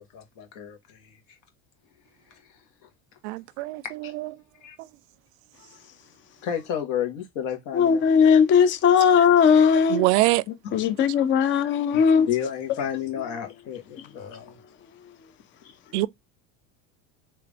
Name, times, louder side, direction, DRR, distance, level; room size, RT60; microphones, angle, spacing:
voice 1, 0.1-1.2 2.3-2.4 2.8-2.9 4.0-4.1 4.6-4.8 6.4-8.0 12.3-14.6 15.6-15.7, left 9 dB, 65° left, 1.6 m, -31 dB
voice 2, 3.2-4.3 9.7-10.4 15.9-16.1, right 20 dB, 80° right, 0.5 m, -24 dB
voice 3, 7.8-10.0 10.7-12.3, left 7 dB, 35° left, 0.6 m, -18 dB
3.4 x 3.0 x 3.4 m
supercardioid pair, 130°, 34 cm